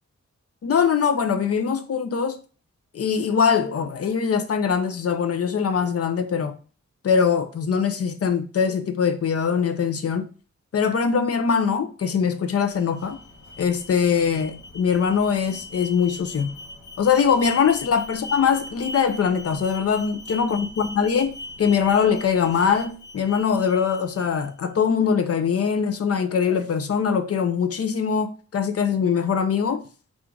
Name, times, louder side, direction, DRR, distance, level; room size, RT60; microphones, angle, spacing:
voice 1, 0.6-2.4 2.9-6.5 7.0-10.3 10.7-13.2 13.6-16.5 17.0-29.8, left 6 dB, 55° left, 0.5 m, -22 dB
Alarm, 12.5-24.5, left 2 dB, 75° left, 1.0 m, -40 dB
3.7 x 2.5 x 4.5 m
wide cardioid pair, 140°, 29 cm